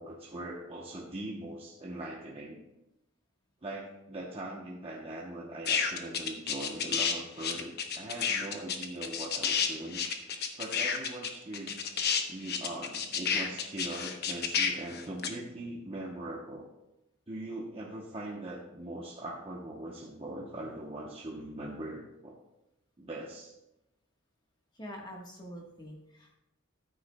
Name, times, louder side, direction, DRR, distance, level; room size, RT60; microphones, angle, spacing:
voice 1, 0.0-2.6 3.6-10.0 10.6-11.8 12.3-16.7 17.3-22.4 23.0-23.5, right 1 dB, 25° right, -3 dB, 0.9 m, -41 dB
sound 1, 5.6-7.1 7.4-15.3, left 6 dB, 50° left, 0.9 m, -30 dB
voice 2, 24.7-26.4, equal, 20° left, -1 dB, 1.3 m, -45 dB
14.0 x 9.2 x 2.3 m, 0.91 s
head